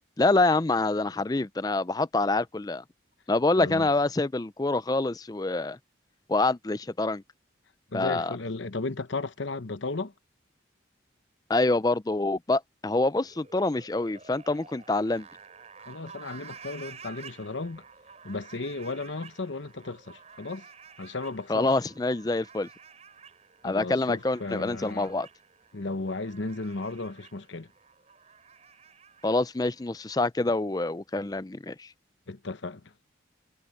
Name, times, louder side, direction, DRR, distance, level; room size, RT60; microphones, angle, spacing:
voice 1, 0.2-2.8 3.3-5.8 6.3-7.2 7.9-8.4 11.5-15.3 21.5-22.7 23.6-25.3 29.2-31.9, left 2 dB, 20° left, 0.4 m, -26 dB
voice 2, 3.6-3.9 7.9-10.1 15.9-17.8 18.2-20.6 21.0-21.7 23.6-25.1 25.7-27.7 32.3-32.8, left 3 dB, 75° left, 1.0 m, -35 dB
sound 1, 13.2-30.2, right 6 dB, 35° right, 5.9 m, -51 dB
head